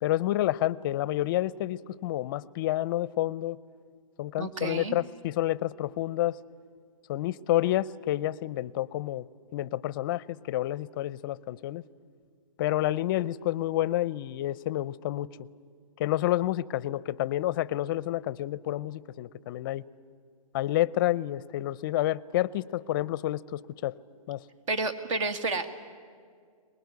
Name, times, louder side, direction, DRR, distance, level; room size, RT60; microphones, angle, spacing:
voice 1, 0.0-3.6 4.2-6.4 7.1-9.2 9.5-11.8 12.6-15.3 16.0-19.8 20.5-23.9 24.3-24.4, left 14 dB, 35° left, 20 dB, 0.5 m, -29 dB
voice 2, 4.4-5.0 24.7-25.7, right 3 dB, 60° right, 10 dB, 2.1 m, -30 dB
23.5 x 20.5 x 9.5 m, 2.1 s
hypercardioid pair, 145°, 19 cm